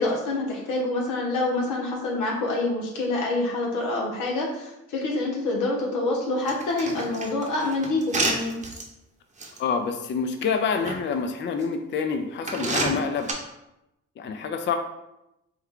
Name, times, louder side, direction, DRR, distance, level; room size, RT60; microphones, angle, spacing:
voice 1, 0.0-8.6, left 2 dB, 90° left, -1 dB, 1.0 m, -26 dB
sound 1, 6.5-8.8 9.4-9.6 10.4-11.0 11.6-11.7 12.5-13.3, right 2 dB, 25° right, 0.8 m, -28 dB
voice 2, 9.6-13.3 14.2-14.8, left 5 dB, 40° left, 6 dB, 0.4 m, -27 dB
4.6 x 2.2 x 3.6 m, 0.89 s
cardioid pair, 90°, 30 cm